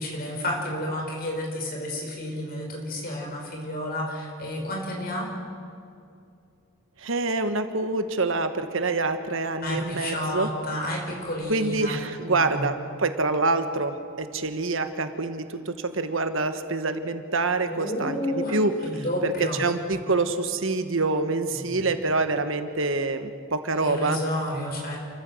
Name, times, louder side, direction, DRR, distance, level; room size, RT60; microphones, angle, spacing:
voice 1, 0.0-5.3 9.6-12.0 12.3-12.7 17.7-18.6 18.8-19.6 21.5-21.9 23.7-25.0, left 1 dB, 45° left, 0 dB, 5.3 m, -31 dB
voice 2, 7.0-10.5 11.5-18.2 18.5-18.7 19.2-19.3 19.6-24.2, right 3 dB, 65° right, 8 dB, 1.3 m, -26 dB
28.5 x 14.5 x 7.7 m, 2.5 s
head